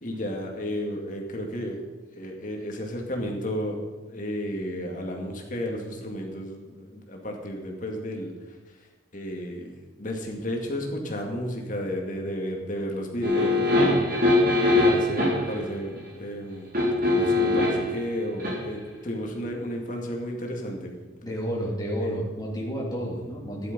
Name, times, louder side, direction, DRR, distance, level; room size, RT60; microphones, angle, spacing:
voice 1, 0.0-1.8 2.2-3.8 4.1-8.3 9.1-14.0 14.7-16.7 17.1-20.9 22.0-22.1 23.3-23.4, equal, 40° left, 1 dB, 2.3 m, -32 dB
sound 1, 13.2-15.5 16.7-17.9 18.4-18.6, left 2 dB, 45° right, 4.0 m, -22 dB
voice 2, 21.2-23.7, equal, 20° left, -4 dB, 3.0 m, -30 dB
13.0 x 11.0 x 5.4 m, 1.3 s
head